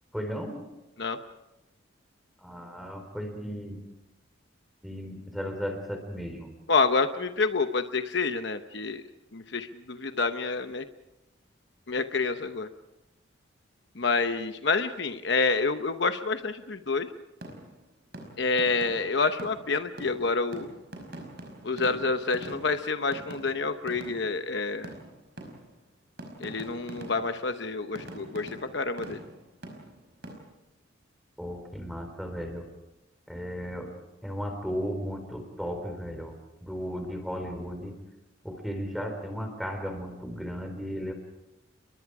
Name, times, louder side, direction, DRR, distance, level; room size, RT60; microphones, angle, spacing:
voice 1, 0.1-0.6 2.4-3.8 4.8-6.5 31.4-32.7 33.3-33.9 34.2-36.3 36.6-37.9 38.4-41.1, equal, ahead, 5 dB, 4.1 m, -35 dB
voice 2, 6.7-9.0 9.3-10.9 11.9-12.7 13.9-17.1 18.4-20.7 21.6-24.9 26.4-29.2, left 4 dB, 60° left, 8 dB, 0.9 m, -28 dB
sound 1, 17.4-17.9 18.1-24.5 24.8-25.9 26.2-27.5 27.9-30.3, right 1 dB, 55° right, 5.1 m, -44 dB
30.0 x 22.5 x 4.9 m, 0.96 s
head